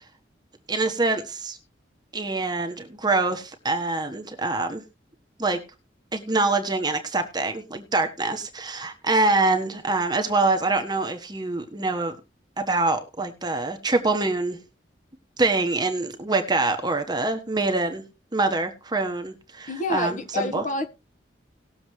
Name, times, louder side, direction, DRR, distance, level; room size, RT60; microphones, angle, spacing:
voice 1, 0.7-1.6 2.1-4.8 5.4-5.6 6.1-12.2 12.6-14.6 15.4-18.0 18.3-20.6, right 3 dB, 25° right, 1.3 m, -25 dB
voice 2, 19.7-20.9, left 2 dB, 40° left, 1.5 m, -28 dB
19.0 x 7.0 x 3.2 m
head